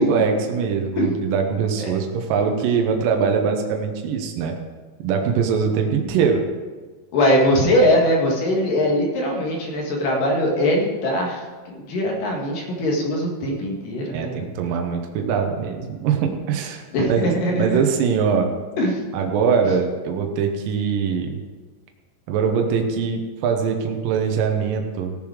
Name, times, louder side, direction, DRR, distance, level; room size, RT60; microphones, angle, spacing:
voice 1, 0.0-4.6 5.0-6.4 14.1-16.8 17.1-18.5 19.1-21.4 22.3-25.2, right 6 dB, 85° right, 3 dB, 1.9 m, -22 dB
voice 2, 7.1-14.5 16.9-17.8 18.8-19.0, equal, 55° left, -1 dB, 2.8 m, -21 dB
17.5 x 7.1 x 4.9 m, 1.4 s
omnidirectional pair, 5.6 m